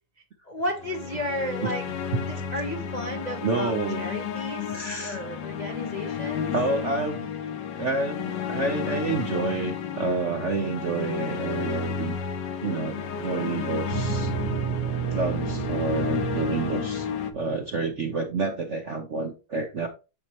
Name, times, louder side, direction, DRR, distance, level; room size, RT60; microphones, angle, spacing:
voice 1, 0.4-1.9 2.2-6.5, equal, 40° left, 2 dB, 0.6 m, -33 dB
sound 1, 0.8-17.3, left 7 dB, 65° left, 1.4 m, -32 dB
voice 2, 3.4-4.1 4.7-5.2 6.5-7.3 7.7-12.1 12.6-14.3 15.1-19.9, right 3 dB, 55° right, 4 dB, 0.8 m, -29 dB
sound 2, 13.9-18.0, right 10 dB, 80° right, 1.6 m, -31 dB
8.5 x 5.6 x 3.0 m, 0.30 s
omnidirectional pair, 2.3 m